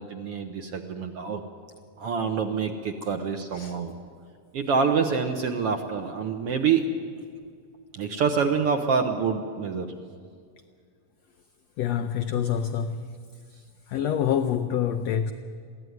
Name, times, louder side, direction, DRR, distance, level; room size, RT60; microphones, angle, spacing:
voice 1, 0.0-1.4 2.0-3.9 4.5-6.9 7.9-9.9, right 6 dB, 65° right, 1.5 m, -26 dB
voice 2, 11.8-13.2 13.9-15.3, left 9 dB, 90° left, 1.4 m, -26 dB
22.5 x 15.5 x 9.4 m
omnidirectional pair, 3.8 m